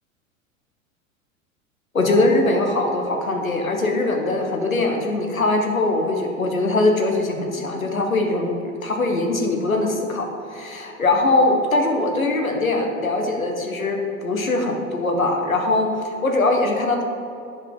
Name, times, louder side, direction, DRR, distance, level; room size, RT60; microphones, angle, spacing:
voice 1, 1.9-17.0, left 2 dB, 85° left, 2 dB, 1.2 m, -21 dB
11.0 x 4.8 x 3.8 m, 2.6 s
figure-of-eight pair, 90°, 40 cm